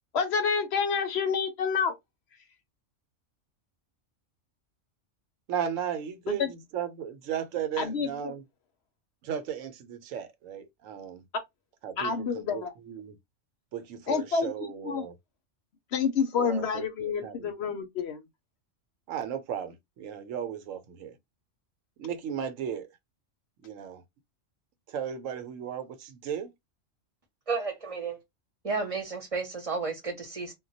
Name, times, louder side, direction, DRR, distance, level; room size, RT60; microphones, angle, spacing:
voice 1, 0.1-1.9 6.3-6.5 7.8-8.1 12.0-12.7 14.1-14.5 14.8-15.1 15.9-18.2, left 6 dB, 65° left, 0.8 m, -28 dB
voice 2, 5.5-8.4 9.2-11.2 11.8-13.2 13.7-15.2 16.3-17.7 19.1-21.2 22.0-22.9 23.6-24.0 24.9-26.5, right 8 dB, 85° right, 1.0 m, -35 dB
voice 3, 27.5-28.2 28.6-30.5, right 4 dB, 30° right, 0.8 m, -32 dB
2.2 x 2.2 x 3.8 m
omnidirectional pair, 1.3 m